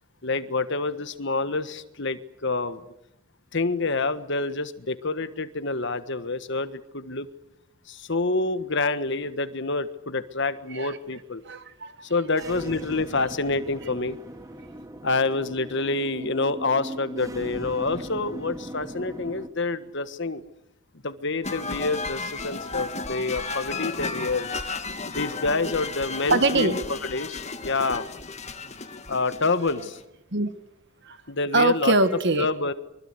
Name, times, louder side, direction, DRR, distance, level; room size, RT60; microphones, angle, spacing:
voice 1, 0.2-2.8 3.5-7.3 7.9-11.4 12.1-14.2 15.0-20.4 21.0-24.5 25.1-28.1 29.1-30.0 31.3-31.9 32.4-32.7, left 3 dB, 55° left, 12 dB, 1.4 m, -27 dB
voice 2, 11.4-12.1 26.3-26.8 30.3-30.5 31.0-31.2 31.5-32.5, right 2 dB, 50° right, 10 dB, 1.8 m, -23 dB
sound 1, 12.3-19.5, right 1 dB, 15° right, 1.7 m, -39 dB
sound 2, 21.4-30.0, left 3 dB, 30° left, 1.7 m, -34 dB
24.0 x 23.5 x 8.4 m, 0.85 s
head